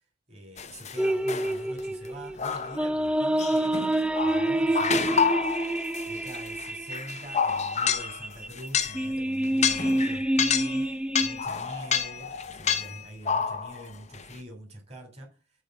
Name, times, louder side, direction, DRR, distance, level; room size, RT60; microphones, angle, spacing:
voice 1, 0.3-3.8 4.2-5.1 6.1-10.9 11.2-15.3, right 1 dB, 35° right, 3.2 m, -44 dB
sound 1, 0.6-1.0 1.3-1.8 2.4-2.9 3.4-9.1 9.4-10.9 11.1-13.9 14.1-14.3, left 6 dB, 35° left, 0.7 m, -29 dB
sound 2, 1.0-11.4, right 1 dB, 5° right, 0.4 m, -28 dB
8.0 x 3.7 x 6.4 m
head